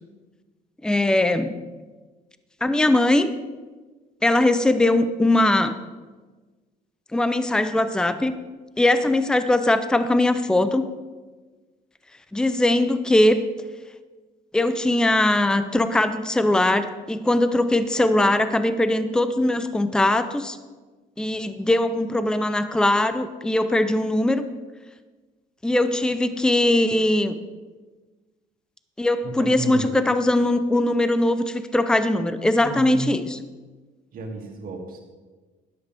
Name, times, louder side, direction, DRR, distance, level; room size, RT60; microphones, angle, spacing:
voice 1, 0.8-1.5 2.6-3.3 4.2-5.7 7.1-8.3 8.8-10.8 12.3-13.5 14.5-20.6 21.2-24.4 25.6-27.3 29.0-33.2, left 1 dB, 5° left, 11 dB, 0.6 m, -20 dB
voice 2, 29.2-29.9 32.6-33.1 34.1-35.0, right 4 dB, 60° right, 1 dB, 2.4 m, -33 dB
11.0 x 10.5 x 3.5 m, 1.3 s
cardioid pair, 110°, 17 cm